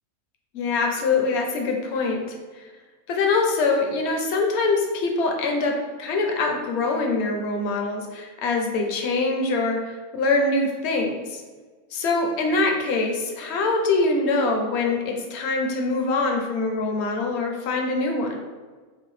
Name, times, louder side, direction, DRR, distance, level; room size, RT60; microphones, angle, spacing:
voice 1, 0.5-2.2 2.6-2.7 3.1-11.4 11.9-18.4, left 3 dB, 60° left, 2 dB, 0.7 m, -24 dB
5.4 x 2.1 x 3.2 m, 1.4 s
omnidirectional pair, 1.7 m